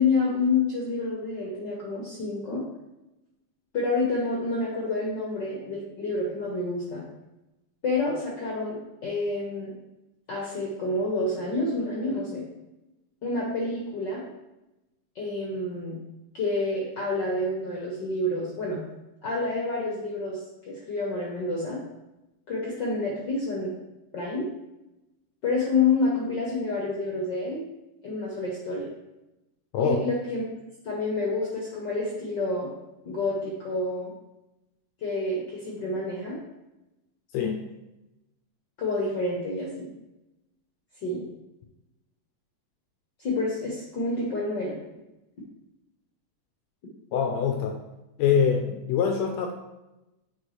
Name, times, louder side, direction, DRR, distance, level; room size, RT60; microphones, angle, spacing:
voice 1, 0.0-2.6 3.7-7.0 7.8-9.7 10.3-12.4 13.2-14.2 15.1-16.0 16.3-18.8 19.2-20.4 20.6-21.8 22.5-23.7 24.1-24.5 25.4-27.6 28.0-28.9 29.7-30.5 30.8-32.7 33.0-34.1 35.0-36.4 38.8-39.9 41.0-41.3 43.2-44.8, left 3 dB, 60° left, -3 dB, 1.2 m, -28 dB
voice 2, 37.3-37.6 47.1-47.8 48.2-49.5, left 7 dB, 80° left, 3 dB, 1.7 m, -24 dB
8.2 x 4.8 x 3.2 m, 0.96 s
omnidirectional pair, 3.4 m